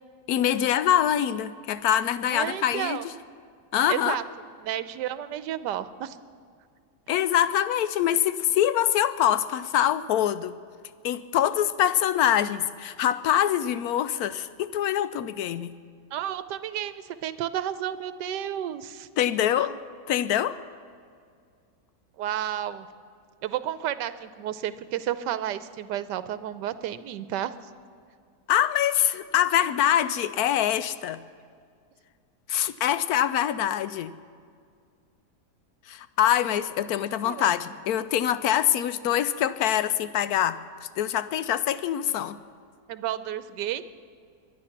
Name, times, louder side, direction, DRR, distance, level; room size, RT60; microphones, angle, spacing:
voice 1, 0.3-3.0 3.7-4.2 7.1-10.6 11.0-15.7 19.2-19.7 20.1-20.6 28.5-31.2 32.5-34.1 35.9-42.4, left 11 dB, 70° left, 14 dB, 1.0 m, -24 dB
voice 2, 2.3-3.0 3.9-4.2 4.6-6.2 16.1-19.1 19.5-19.8 22.2-22.9 23.4-27.5 37.2-37.5 42.9-43.8, right 11 dB, 80° right, 13 dB, 1.3 m, -31 dB
23.5 x 10.0 x 5.9 m, 2.2 s
omnidirectional pair, 1.9 m